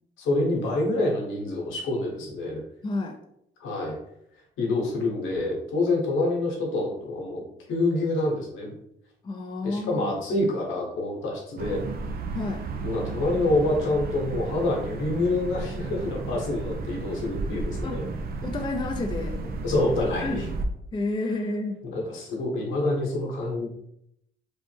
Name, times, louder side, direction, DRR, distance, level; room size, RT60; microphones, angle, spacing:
voice 1, 0.2-2.6 3.6-4.0 4.6-7.4 7.7-8.7 9.6-11.8 12.8-18.0 19.6-20.4 21.8-23.7, left 2 dB, 75° left, -2 dB, 1.1 m, -27 dB
voice 2, 2.8-3.2 9.2-10.1 12.3-12.6 17.8-18.0 18.4-19.4 20.2-20.4 20.9-21.8, left 2 dB, 25° left, 3 dB, 0.4 m, -30 dB
sound 1, 11.6-20.7, right 3 dB, 50° right, 0.4 m, -33 dB
3.2 x 2.0 x 3.2 m, 0.77 s
cardioid pair, 90°, 20 cm